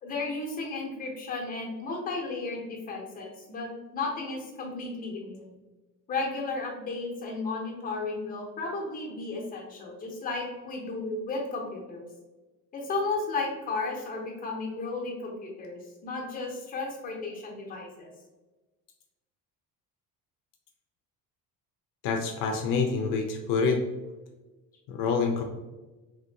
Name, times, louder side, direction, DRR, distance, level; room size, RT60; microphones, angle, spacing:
voice 1, 0.0-5.6 6.1-12.0 12.7-18.1, left 3 dB, 25° left, -1 dB, 0.8 m, -34 dB
voice 2, 22.0-23.8 24.9-25.4, left 5 dB, 70° left, 3 dB, 0.5 m, -26 dB
2.9 x 2.7 x 2.7 m, 1.1 s
cardioid pair, 160°, 34 cm